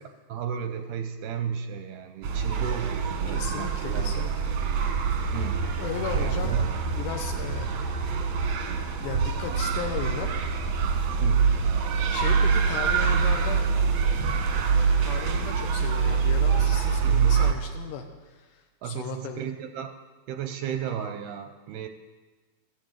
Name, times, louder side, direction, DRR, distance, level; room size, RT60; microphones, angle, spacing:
voice 1, 0.3-4.2 5.3-5.7 6.2-6.7 7.4-7.8 11.2-11.6 12.2-12.3 17.0-17.4 18.8-19.9 20.3-21.9, right 8 dB, 80° right, 7 dB, 2.4 m, -34 dB
sound 1, 2.2-17.5, right 5 dB, 65° right, 1.7 m, -25 dB
voice 2, 3.3-4.6 5.8-6.6 6.8-8.1 9.0-10.3 12.1-13.7 15.0-19.5, left 8 dB, 80° left, 4 dB, 3.0 m, -36 dB
14.5 x 11.5 x 7.9 m, 1.3 s
omnidirectional pair, 5.0 m